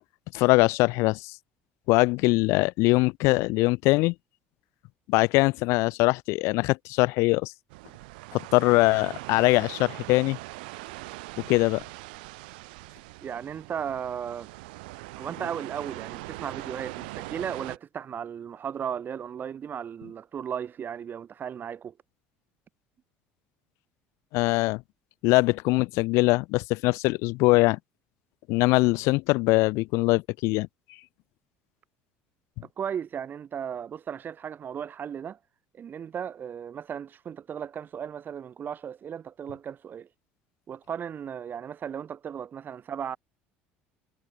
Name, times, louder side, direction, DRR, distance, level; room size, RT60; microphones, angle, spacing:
voice 1, 0.3-1.4 1.9-4.1 5.1-7.5 8.3-10.4 11.5-11.8 24.3-24.8 25.2-27.8 28.5-30.7, left 23 dB, 75° left, 0.8 m, -22 dB
sound 1, 7.7-17.8, right 25 dB, 85° right, 2.7 m, -41 dB
voice 2, 13.2-14.5 15.2-22.0 32.6-35.4 35.7-40.1 40.7-43.2, right 8 dB, 40° right, 4.1 m, -36 dB
supercardioid pair, 90°, 5 cm